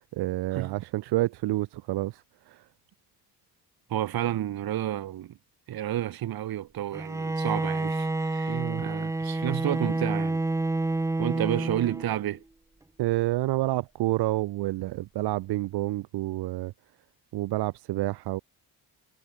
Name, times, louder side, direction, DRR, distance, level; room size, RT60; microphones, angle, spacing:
voice 1, 0.0-2.7 8.5-8.9 13.0-16.7 17.3-18.4, right 17 dB, 80° right, 0.8 m, -29 dB
voice 2, 3.9-5.4 5.7-10.4 11.2-12.4, right 12 dB, 65° right, 1.5 m, -31 dB
Bowed string instrument, 6.9-12.3, right 2 dB, 10° right, 0.6 m, -29 dB
cardioid pair, 110°, 39 cm